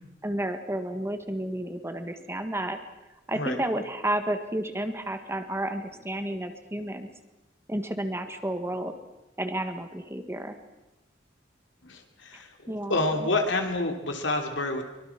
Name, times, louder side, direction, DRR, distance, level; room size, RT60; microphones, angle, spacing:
voice 1, 0.2-2.8 3.3-7.1 7.7-8.9 9.4-10.5 12.7-13.0, right 1 dB, 15° right, 7 dB, 1.6 m, -31 dB
voice 2, 11.8-14.8, left 2 dB, 70° left, 4 dB, 3.0 m, -28 dB
24.0 x 22.5 x 6.0 m, 0.98 s
head